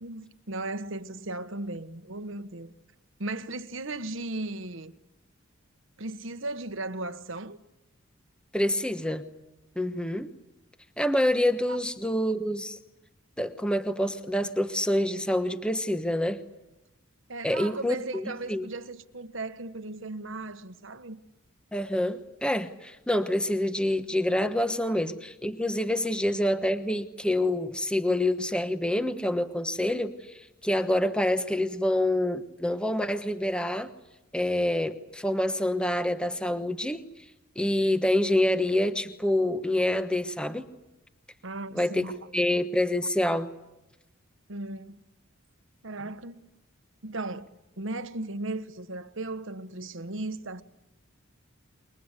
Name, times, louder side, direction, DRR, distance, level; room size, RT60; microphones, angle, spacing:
voice 1, 0.0-2.7 3.2-4.9 6.0-7.6 11.7-11.8 17.3-21.2 41.4-42.3 44.5-44.9 45.8-46.4 47.0-47.5 47.8-50.6, right 2 dB, 60° right, 1.3 m, -36 dB
voice 2, 8.5-9.2 9.8-10.3 11.0-12.8 13.4-16.4 17.4-18.7 21.7-33.9 34.3-37.0 37.6-40.6 41.7-43.5, left 1 dB, 5° left, 1.1 m, -27 dB
29.5 x 23.5 x 8.3 m
head